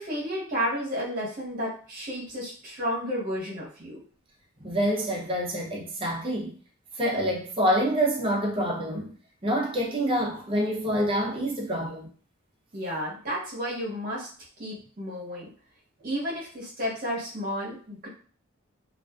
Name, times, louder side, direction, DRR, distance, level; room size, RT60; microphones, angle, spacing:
voice 1, 0.0-4.0 12.7-14.3 14.6-15.5 16.0-18.1, equal, 40° right, 1.0 m, -32 dB
voice 2, 4.6-6.5 6.9-9.1 9.4-12.1, equal, 25° right, 0.5 m, -27 dB
2.4 x 2.3 x 2.3 m
head